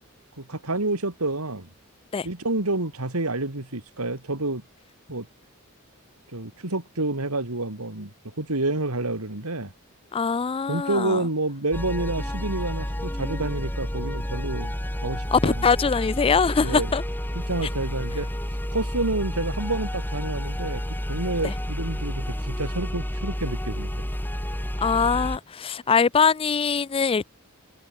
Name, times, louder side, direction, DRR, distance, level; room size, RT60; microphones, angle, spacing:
voice 1, 0.4-1.7 2.2-4.6 5.1-5.3 6.3-8.1 8.4-9.7 10.7-14.7 15.0-15.6 16.6-16.9 17.5-18.3 18.7-20.8 21.1-24.1, right 2 dB, 90° right, 3.5 m, -29 dB
voice 2, 10.1-11.2 15.3-17.0 21.4-21.5 24.8-27.2, left 5 dB, 25° left, 0.4 m, -22 dB
sound 1, 11.7-25.4, equal, 10° left, 3.6 m, -30 dB
head